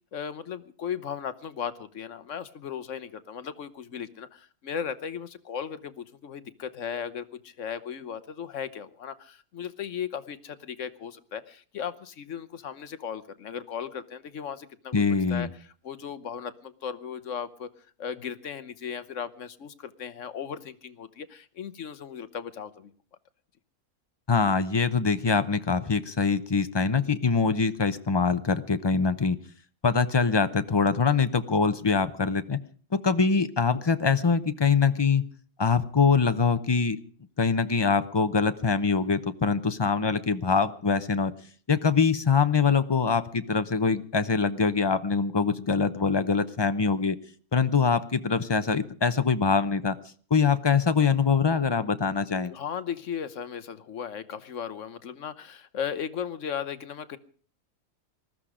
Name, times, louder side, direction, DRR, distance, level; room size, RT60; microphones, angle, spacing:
voice 1, 0.1-17.7 18.0-22.9 52.4-57.2, left 8 dB, 60° left, 13 dB, 1.2 m, -36 dB
voice 2, 14.9-15.5 24.3-29.4 29.8-32.6 33.0-35.3 35.6-37.0 37.4-41.3 41.7-47.2 47.5-50.0 50.3-52.5, left 5 dB, 30° left, 11 dB, 0.5 m, -24 dB
20.0 x 14.0 x 5.0 m, 0.44 s
omnidirectional pair, 1.5 m